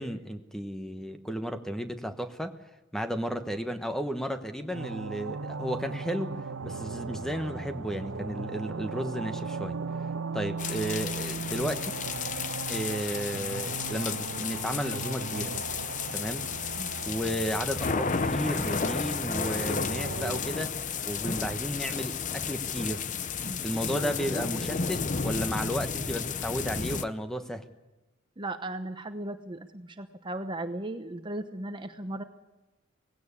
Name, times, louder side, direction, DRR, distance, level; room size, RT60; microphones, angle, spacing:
voice 1, 0.0-2.5 2.9-6.3 6.6-9.8 10.3-11.9 12.7-15.5 16.1-16.4 17.1-20.7 21.1-23.0 23.6-27.6, equal, ahead, 8 dB, 1.1 m, -33 dB
sound 1, 4.7-20.4, right 4 dB, 80° right, 0.9 m, -37 dB
sound 2, 10.6-27.0, left 6 dB, 35° left, 0.7 m, -33 dB
voice 2, 28.4-32.2, right 1 dB, 25° right, 8 dB, 0.9 m, -36 dB
19.0 x 16.5 x 8.6 m, 1.1 s
head